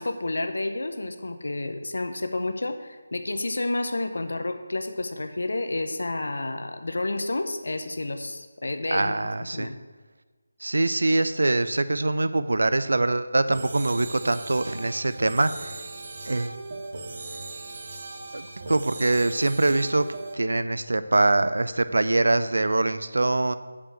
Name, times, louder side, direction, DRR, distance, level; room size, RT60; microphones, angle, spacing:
voice 1, 0.0-9.7, left 2 dB, 75° left, 7 dB, 0.9 m, -30 dB
voice 2, 8.9-9.7 10.6-15.8 16.2-16.6 18.3-20.1 20.3-23.5, right 2 dB, 80° right, 13 dB, 0.6 m, -23 dB
sound 1, 13.5-20.4, right 3 dB, 40° right, 1.0 m, -38 dB
8.4 x 5.2 x 7.7 m, 1.4 s
figure-of-eight pair, 170°, 0 cm